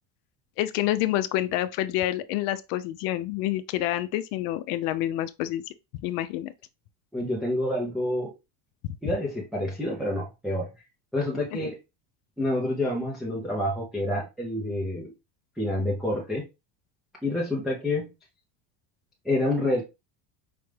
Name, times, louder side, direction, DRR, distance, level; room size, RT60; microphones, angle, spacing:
voice 1, 0.6-5.7 6.0-6.5, left 14 dB, 70° left, 0.5 m, -28 dB
voice 2, 7.1-8.3 9.0-10.7 11.1-11.8 12.4-15.1 15.6-16.4 17.2-18.1 19.2-19.8, left 1 dB, ahead, 0.3 m, -28 dB
5.0 x 2.2 x 3.1 m
cardioid pair, 145°, 48 cm